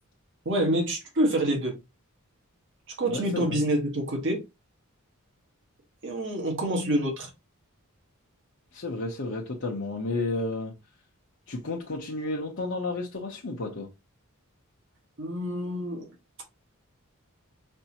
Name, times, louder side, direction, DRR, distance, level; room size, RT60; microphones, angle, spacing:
voice 1, 0.4-1.7 2.9-4.4 6.0-7.3 15.2-16.1, right 1 dB, 60° right, 1.4 m, -27 dB
voice 2, 3.0-3.6 8.7-10.7 11.5-13.9, left 2 dB, 60° left, 0.9 m, -32 dB
5.2 x 2.7 x 2.8 m
head